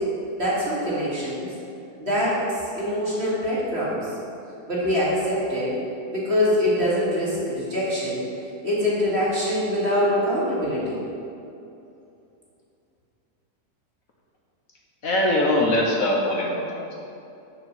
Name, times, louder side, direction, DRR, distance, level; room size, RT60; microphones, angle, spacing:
voice 1, 0.4-1.5 2.0-4.0 4.7-5.7 6.1-8.2 8.6-11.0, equal, 35° right, -8 dB, 2.4 m, -24 dB
voice 2, 15.0-16.9, left 1 dB, 55° left, -2 dB, 1.3 m, -22 dB
6.8 x 6.8 x 5.9 m, 2.7 s
omnidirectional pair, 1.8 m